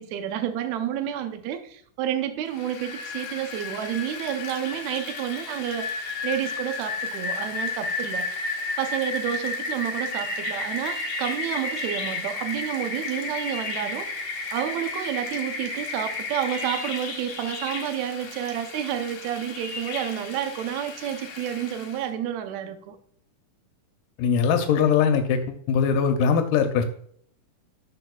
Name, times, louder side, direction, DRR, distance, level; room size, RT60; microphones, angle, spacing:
voice 1, 0.0-14.1 14.5-23.0, right 10 dB, 70° right, 1.9 m, -30 dB
Rain, 2.5-22.0, left 3 dB, 60° left, 2.8 m, -33 dB
voice 2, 24.2-26.8, left 6 dB, 85° left, 2.3 m, -21 dB
10.5 x 6.7 x 2.3 m
omnidirectional pair, 3.8 m